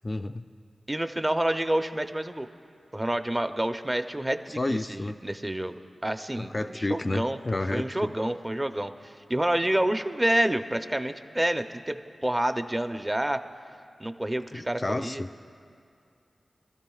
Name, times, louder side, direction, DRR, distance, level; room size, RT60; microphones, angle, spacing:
voice 1, 0.0-0.5 4.6-5.2 6.4-8.1 14.5-15.3, left 2 dB, 35° left, 7 dB, 0.4 m, -30 dB
voice 2, 0.9-2.5 2.9-5.7 6.0-7.4 7.7-13.4 14.0-15.2, right 1 dB, 20° right, 8 dB, 0.6 m, -28 dB
25.5 x 13.0 x 2.4 m, 2.5 s
cardioid pair, 60°, 0 cm